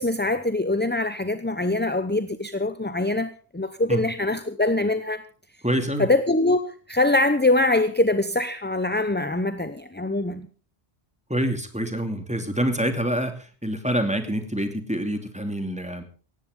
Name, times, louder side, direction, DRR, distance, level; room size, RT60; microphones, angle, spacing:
voice 1, 0.0-5.2 6.0-10.5, left 2 dB, 10° left, 12 dB, 0.7 m, -23 dB
voice 2, 5.6-6.1 11.3-16.0, right 1 dB, 5° right, 6 dB, 2.6 m, -26 dB
18.0 x 15.0 x 3.8 m, 0.38 s
omnidirectional pair, 1.1 m